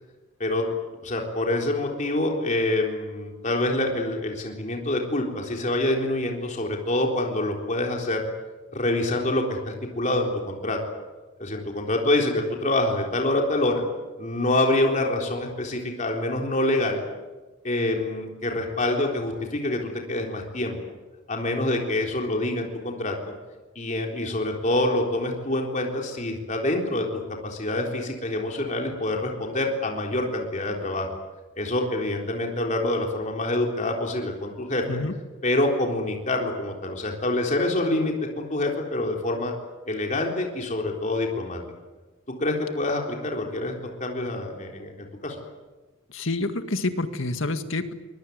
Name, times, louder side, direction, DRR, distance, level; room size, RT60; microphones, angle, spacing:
voice 1, 1.0-8.2 8.7-10.8 11.4-13.8 14.2-17.0 17.6-20.8 21.3-23.2 23.8-27.1 27.4-31.2 31.6-34.8 35.4-39.5 39.9-41.6 42.4-43.7 44.0-45.4, left 1 dB, 35° left, 1 dB, 3.9 m, -26 dB
voice 2, 34.9-35.2 46.1-47.9, left 2 dB, 70° left, 8 dB, 1.9 m, -28 dB
24.0 x 21.0 x 9.5 m, 1.2 s
head